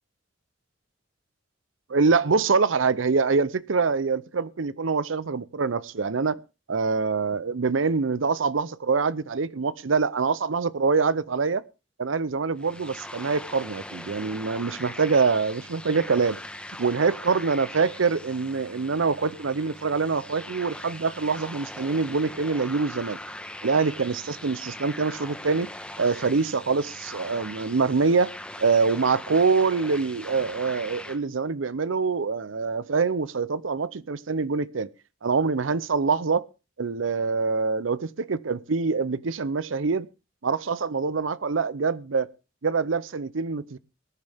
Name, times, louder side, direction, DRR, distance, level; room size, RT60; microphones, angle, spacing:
voice 1, 1.9-6.4 6.7-11.6 12.0-16.4 16.8-23.2 23.6-25.7 26.0-34.9 35.2-36.4 36.8-40.1 40.4-42.3 42.6-43.8, right 4 dB, 80° right, 0.7 m, -25 dB
sound 1, 12.6-31.2, left 1 dB, 5° left, 1.3 m, -41 dB
20.5 x 10.5 x 3.5 m
head